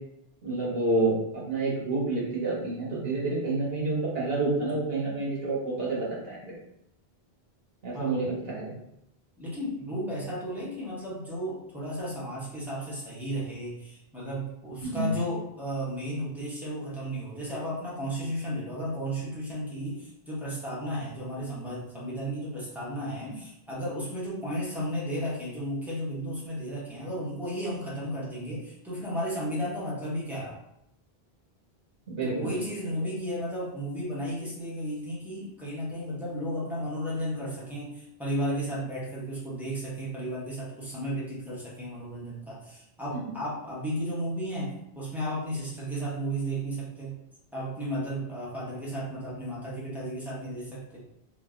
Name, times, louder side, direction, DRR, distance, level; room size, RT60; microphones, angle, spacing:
voice 1, 0.4-6.5 7.8-8.7 14.8-15.1 23.3-23.4 32.2-32.5 43.2-43.3, right 2 dB, 70° right, -5 dB, 1.2 m, -29 dB
voice 2, 7.9-8.3 9.4-30.6 32.2-47.1 47.5-51.0, equal, ahead, -8 dB, 1.1 m, -34 dB
2.9 x 2.6 x 3.6 m, 0.80 s
omnidirectional pair, 1.1 m